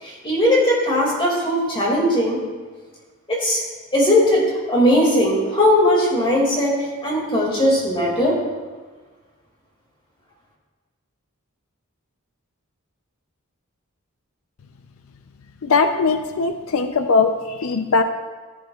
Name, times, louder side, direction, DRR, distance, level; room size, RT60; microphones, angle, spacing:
voice 1, 0.0-2.5 3.3-3.6 3.9-8.4, left 1 dB, 25° left, -3 dB, 2.1 m, -19 dB
voice 2, 15.6-18.0, left 4 dB, 75° left, 8 dB, 0.5 m, -20 dB
15.5 x 8.4 x 2.3 m, 1.4 s
head